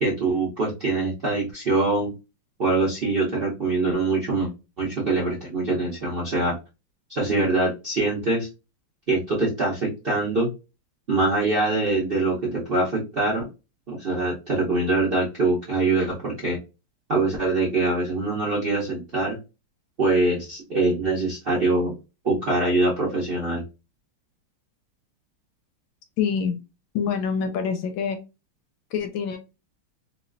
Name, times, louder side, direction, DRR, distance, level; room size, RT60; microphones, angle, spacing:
voice 1, 0.0-2.1 2.6-4.5 4.8-6.6 7.1-8.5 9.1-10.5 11.1-13.5 13.9-16.6 17.1-19.4 20.0-21.9 22.2-23.6, right 2 dB, 55° right, -5 dB, 0.6 m, -23 dB
voice 2, 26.2-26.6 26.9-28.2 28.9-29.4, left 6 dB, 75° left, 7 dB, 1.2 m, -25 dB
3.1 x 2.8 x 2.4 m, 0.27 s
omnidirectional pair, 2.3 m